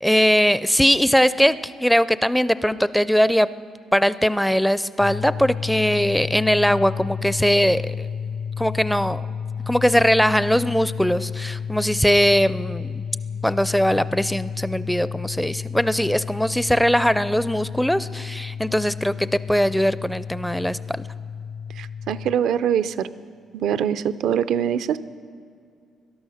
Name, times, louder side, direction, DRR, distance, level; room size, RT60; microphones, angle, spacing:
voice 1, 0.0-3.5 3.9-8.1 8.6-9.3 9.7-13.0 13.4-21.1, equal, ahead, 16 dB, 0.4 m, -20 dB
sound 1, 5.0-22.4, left 6 dB, 55° left, 0.8 m, -32 dB
voice 2, 21.8-23.1 23.5-25.0, right 9 dB, 80° right, 13 dB, 0.5 m, -23 dB
18.0 x 12.0 x 6.4 m, 2.3 s
cardioid pair, 90°, 0 cm